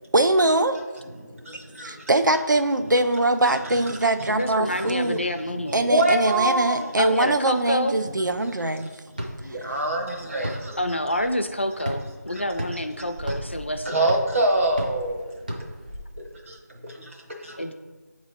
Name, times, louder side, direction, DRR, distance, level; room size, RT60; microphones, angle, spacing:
voice 1, 0.1-0.8 1.8-5.2 5.7-8.9, right 2 dB, 85° right, 8 dB, 0.5 m, -22 dB
voice 2, 1.2-2.0 4.2-4.3 4.7-6.9 9.2-10.8 11.1-11.2 12.3-12.4 13.8-15.4 16.2-16.6 16.8-17.2 17.4-17.6, right 2 dB, 45° right, 1 dB, 1.1 m, -26 dB
voice 3, 4.3-5.9 7.0-8.0 10.8-14.1 17.6-17.7, left 1 dB, 40° left, 7 dB, 0.3 m, -27 dB
sound 1, 9.1-16.0, equal, 25° right, 0.5 m, -36 dB
8.1 x 3.1 x 4.0 m, 1.3 s
figure-of-eight pair, 170°, 10 cm